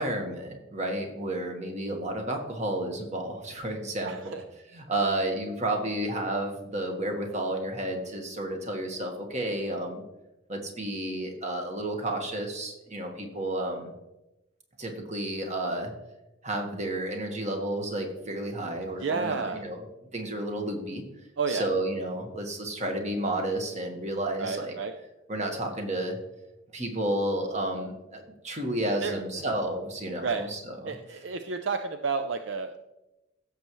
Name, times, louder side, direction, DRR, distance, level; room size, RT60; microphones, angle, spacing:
voice 1, 0.0-4.4 4.7-10.0 10.5-13.9 14.8-15.9 16.4-19.8 20.1-21.0 21.5-24.7 25.3-26.2 26.7-30.9, right 1 dB, 35° right, 2 dB, 1.5 m, -31 dB
voice 2, 4.1-4.4 19.0-19.6 21.4-21.7 24.4-24.9 29.0-29.2 30.2-30.4 30.9-32.8, right 5 dB, 60° right, 7 dB, 0.5 m, -31 dB
15.5 x 6.8 x 3.1 m, 0.96 s
head